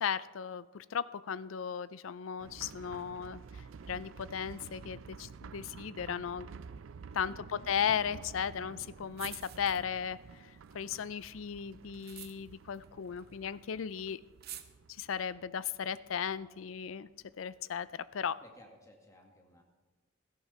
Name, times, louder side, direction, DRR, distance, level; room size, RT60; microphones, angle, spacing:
voice 1, 0.0-6.5 7.1-14.2 15.0-17.1 17.4-18.4, left 7 dB, 85° left, 17 dB, 0.4 m, -36 dB
sound 1, 2.4-17.9 18.1-18.2 18.6-18.7, right 5 dB, 75° right, 0.4 m, -51 dB
voice 2, 7.2-7.7 18.4-19.6, left 1 dB, 15° left, 2 dB, 1.9 m, -58 dB
sound 2, 9.1-10.2 10.5-13.6 13.9-14.0 14.2-14.6, right 12 dB, 50° right, 0.8 m, -49 dB
16.0 x 13.5 x 4.3 m, 1.3 s
head